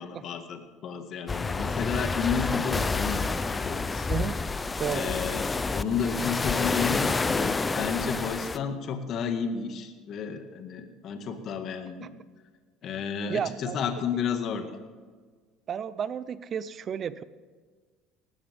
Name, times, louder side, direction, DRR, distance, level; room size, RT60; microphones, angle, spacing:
voice 1, 0.0-4.1 4.9-12.1 12.8-14.8, left 6 dB, 50° left, 6 dB, 1.9 m, -32 dB
sound 1, 1.3-8.6, left 3 dB, 20° left, 0.6 m, -29 dB
voice 2, 4.8-5.1 12.0-12.1 13.3-13.8 15.7-17.2, right 8 dB, 40° right, 15 dB, 0.8 m, -32 dB
18.5 x 15.0 x 3.6 m, 1.5 s
supercardioid pair, 105°, 0 cm